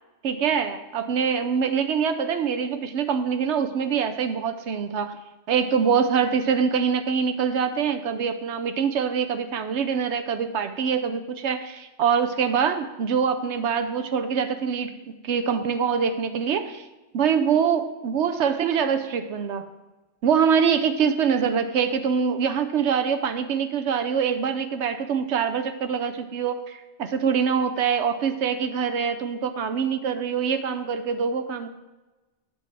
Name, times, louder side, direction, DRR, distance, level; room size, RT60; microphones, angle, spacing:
voice 1, 0.2-5.1 5.5-16.8 17.1-19.6 20.2-31.7, right 7 dB, 70° right, 8 dB, 0.8 m, -24 dB
8.2 x 4.5 x 7.1 m, 1.1 s
omnidirectional pair, 1.3 m